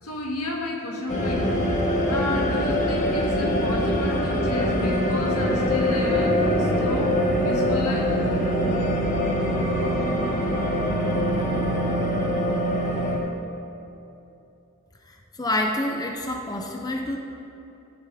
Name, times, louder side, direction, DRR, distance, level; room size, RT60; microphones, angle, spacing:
voice 1, 0.0-1.7 2.1-8.2, left 2 dB, 80° left, -2 dB, 2.2 m, -32 dB
sound 1, 1.1-13.2, equal, 35° left, 1.7 m, -23 dB
voice 2, 15.1-17.2, left 1 dB, 15° left, 2 dB, 0.7 m, -28 dB
15.0 x 11.0 x 3.6 m, 2.9 s
head